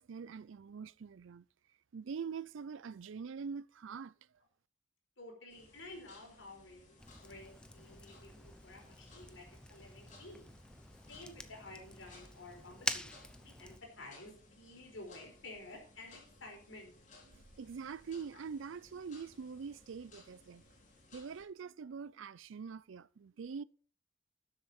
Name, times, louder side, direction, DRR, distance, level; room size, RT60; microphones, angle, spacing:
voice 1, 0.0-1.4 1.9-4.1 17.3-20.6 21.1-23.6, right 6 dB, 75° right, 0.4 m, -44 dB
voice 2, 5.2-10.5 11.1-13.1 13.4-16.9 18.3-18.4, left 2 dB, 75° left, 4.5 m, -52 dB
sound 1, 5.5-21.4, left 2 dB, 40° left, 3.6 m, -61 dB
Fire, 7.0-13.8, left 1 dB, 5° left, 0.6 m, -46 dB
12.5 x 7.8 x 4.3 m
head